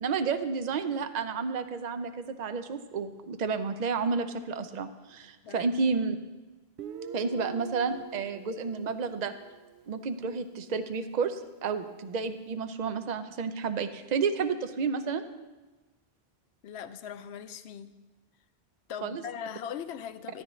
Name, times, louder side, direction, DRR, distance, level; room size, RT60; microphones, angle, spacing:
voice 1, 0.0-6.2 7.1-9.3 9.9-15.2 19.0-19.2, right 5 dB, 50° right, 10 dB, 0.6 m, -31 dB
Guitar, 6.8-10.3, right 7 dB, 80° right, 0.8 m, -44 dB
voice 2, 16.6-17.9 18.9-20.4, left 8 dB, 90° left, 12 dB, 0.8 m, -40 dB
13.0 x 9.7 x 3.1 m, 1.2 s
omnidirectional pair, 1.1 m